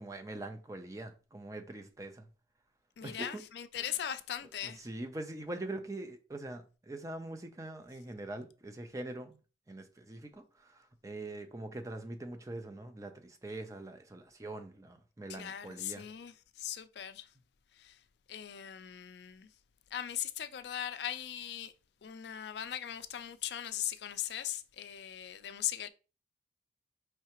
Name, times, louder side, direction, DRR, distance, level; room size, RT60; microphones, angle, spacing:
voice 1, 0.0-2.3 3.0-3.4 3.8-3.9 4.6-9.4 9.7-16.1, right 2 dB, 20° right, 0.5 m, -43 dB
voice 2, 3.0-4.9 15.3-17.3 17.8-18.0 18.3-19.5 19.9-21.7 22.0-25.9, left 11 dB, 70° left, 0.4 m, -39 dB
4.7 x 3.2 x 2.9 m
head